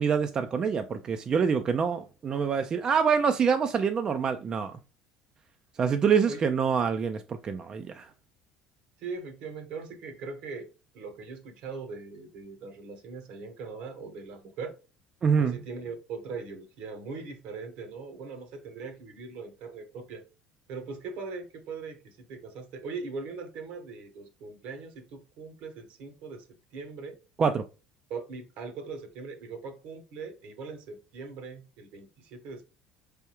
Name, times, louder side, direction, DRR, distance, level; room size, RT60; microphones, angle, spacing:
voice 1, 0.0-4.8 5.8-8.1 15.2-15.6 27.4-27.6, right 6 dB, 40° right, 0.4 m, -26 dB
voice 2, 9.0-10.7 10.9-14.7 15.4-20.2 20.7-26.5 26.7-27.2 28.1-32.6, right 4 dB, 70° right, 1.1 m, -40 dB
4.5 x 3.4 x 2.9 m
hypercardioid pair, 70°, 2 cm